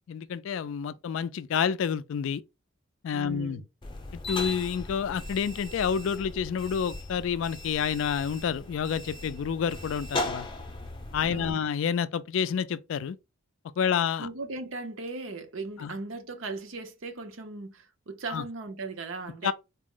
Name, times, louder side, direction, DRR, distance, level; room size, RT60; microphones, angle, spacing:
voice 1, 0.1-2.4 3.0-3.6 4.3-10.5 11.1-13.2 13.8-14.3 15.8-16.0 18.3-18.4 19.4-19.5, left 7 dB, 70° left, 0.3 m, -29 dB
voice 2, 3.1-3.6 11.3-11.6 14.2-19.5, right 3 dB, 65° right, 0.7 m, -38 dB
sound 1, 3.8-11.5, left 2 dB, 25° left, 0.6 m, -38 dB
4.1 x 2.0 x 3.6 m
head